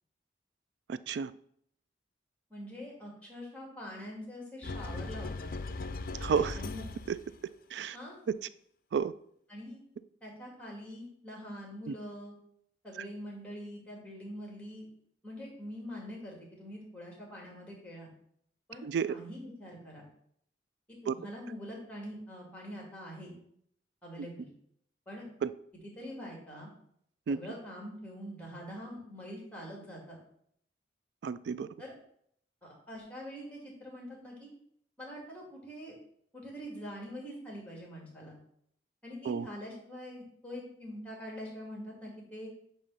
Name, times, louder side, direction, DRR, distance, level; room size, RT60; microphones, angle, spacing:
voice 1, 0.9-1.3 6.2-6.6 7.1-7.2 7.7-8.0 8.9-9.1 11.9-12.0 18.8-19.1 21.1-21.2 25.4-25.5 27.3-27.4 31.2-31.7 39.3-39.5, right 6 dB, 70° right, 16 dB, 0.3 m, -31 dB
voice 2, 2.5-5.5 6.5-6.8 7.9-8.2 9.5-9.8 10.2-12.3 12.8-14.9 15.2-18.1 18.7-20.0 20.9-23.3 24.0-24.5 25.1-25.2 25.8-26.7 27.3-30.2 31.8-31.9 32.6-34.5 35.0-36.0 36.3-38.4 39.0-42.5, equal, 10° left, -2 dB, 2.0 m, -44 dB
sound 1, 4.6-7.4, left 3 dB, 55° left, 0.5 m, -38 dB
8.6 x 3.0 x 5.5 m, 0.68 s
head